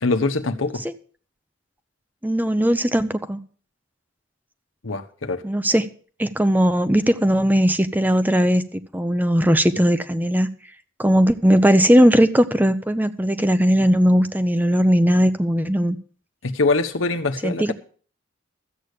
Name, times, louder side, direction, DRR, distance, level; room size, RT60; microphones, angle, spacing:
voice 1, 0.0-0.8 4.8-5.4 16.4-17.7, left 3 dB, 90° left, 1.2 m, -23 dB
voice 2, 2.2-3.4 5.4-5.9 6.2-10.5 11.0-16.0 17.4-17.7, equal, 10° right, 0.7 m, -18 dB
13.5 x 8.3 x 6.7 m
head